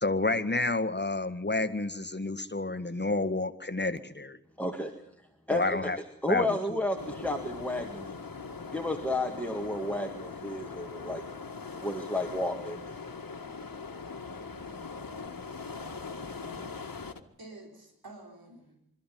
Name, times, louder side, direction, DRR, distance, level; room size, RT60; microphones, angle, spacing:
voice 1, 0.0-4.4 5.5-6.0 6.3-6.8, left 2 dB, 30° left, 10 dB, 1.7 m, -30 dB
voice 2, 4.6-5.0 5.5-5.9 6.2-8.2 8.7-11.2 11.8-12.9, left 1 dB, 5° left, 3 dB, 2.1 m, -32 dB
sound 1, 7.0-17.2, left 4 dB, 70° left, 1.8 m, -41 dB
voice 3, 17.4-18.8, right 2 dB, 90° right, 1 dB, 5.0 m, -51 dB
26.0 x 13.5 x 9.4 m, 0.73 s
wide cardioid pair, 50°, 35 cm